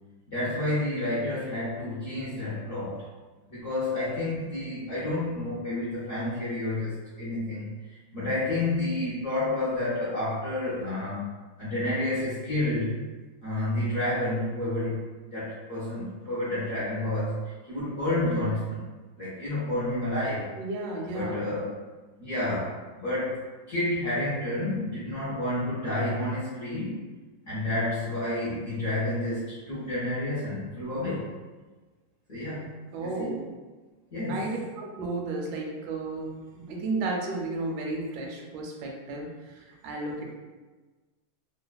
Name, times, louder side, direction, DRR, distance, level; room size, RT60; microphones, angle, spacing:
voice 1, 0.3-3.0 3.5-13.0 13.4-15.0 15.3-18.9 19.2-20.5 21.1-21.7 22.2-27.0 27.5-31.3 32.3-32.7 33.0-33.3 34.1-34.5, left 1 dB, 65° left, -10 dB, 0.7 m, -30 dB
voice 2, 20.6-21.5 32.9-33.4 34.3-40.3, right 2 dB, 75° right, 0 dB, 0.9 m, -33 dB
3.2 x 2.1 x 2.2 m, 1.3 s
omnidirectional pair, 2.1 m